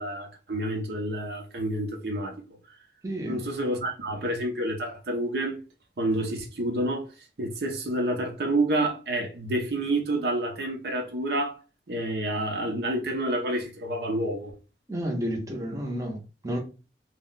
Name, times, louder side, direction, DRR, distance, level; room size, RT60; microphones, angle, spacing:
voice 1, 0.0-2.4 3.3-5.6 6.0-7.1 7.4-11.6 11.9-14.5, right 1 dB, 60° right, 0.6 m, -28 dB
voice 2, 3.0-3.4 14.9-16.6, equal, 20° right, 0.6 m, -31 dB
2.3 x 2.1 x 3.8 m
head